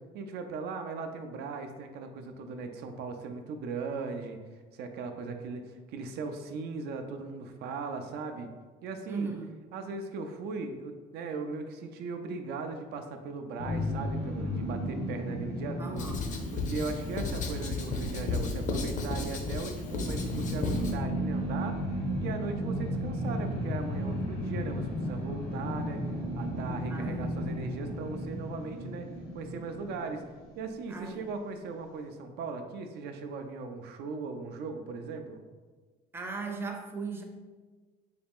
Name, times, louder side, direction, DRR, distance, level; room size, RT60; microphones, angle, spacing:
voice 1, 0.1-8.5 8.8-9.3 9.7-16.2 16.5-29.1 29.3-30.2 30.6-35.4, right 4 dB, 75° right, 6 dB, 0.4 m, -38 dB
voice 2, 9.1-9.6 15.8-16.2 26.9-27.3 30.9-31.3 36.1-37.2, right 4 dB, 15° right, 2 dB, 0.5 m, -37 dB
sound 1, 13.6-30.8, equal, 85° left, 1.3 m, -35 dB
Writing, 16.0-21.0, left 3 dB, 45° left, 0.6 m, -34 dB
4.1 x 2.4 x 3.5 m, 1.4 s
cardioid pair, 110°, 17 cm